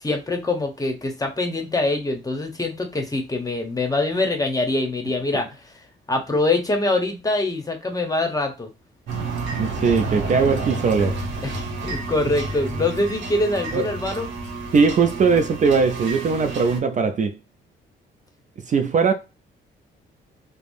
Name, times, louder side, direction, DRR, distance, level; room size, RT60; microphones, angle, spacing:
voice 1, 0.0-5.7 6.1-8.7 11.4-14.3, left 2 dB, 20° left, 0.8 m, -24 dB
sound 1, 9.1-16.8, right 3 dB, 70° right, 0.9 m, -30 dB
voice 2, 9.6-11.2 13.7-13.9 14.7-17.4 18.7-19.1, right 5 dB, 40° right, 0.4 m, -20 dB
3.2 x 2.0 x 2.6 m
cardioid pair, 90°, 20 cm